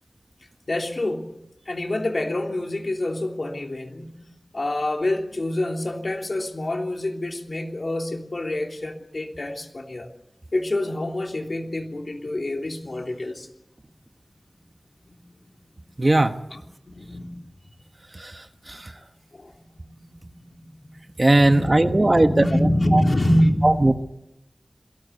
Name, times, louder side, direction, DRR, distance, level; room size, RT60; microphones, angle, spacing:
voice 1, 0.7-1.4 1.7-4.2 4.5-10.1 10.5-13.5 15.1-15.2 16.5-17.4 18.6-18.7 19.3-19.5 21.3-23.9, left 1 dB, 60° left, 3 dB, 3.1 m, -26 dB
voice 2, 16.0-16.3 18.2-18.3 18.7-18.9 21.2-22.4 22.9-23.0 23.6-23.9, right 2 dB, 40° right, 8 dB, 1.2 m, -18 dB
27.0 x 19.0 x 8.2 m, 0.86 s
wide cardioid pair, 60°, 0 cm